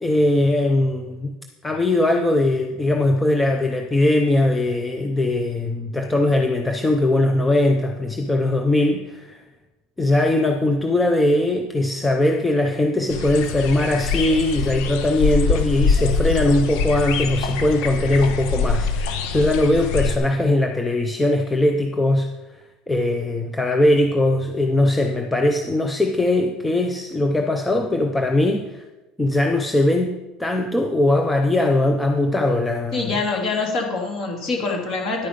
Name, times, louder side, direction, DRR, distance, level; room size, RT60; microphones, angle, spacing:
voice 1, 0.0-1.3 1.6-9.4 10.0-28.8 29.2-33.1, left 1 dB, 5° left, 4 dB, 0.6 m, -20 dB
sound 1, 13.1-20.2, left 5 dB, 60° left, 1.1 m, -24 dB
voice 2, 32.9-35.3, left 3 dB, 35° left, 0 dB, 2.6 m, -25 dB
10.5 x 8.9 x 5.2 m, 1.1 s
cardioid pair, 175°, 0 cm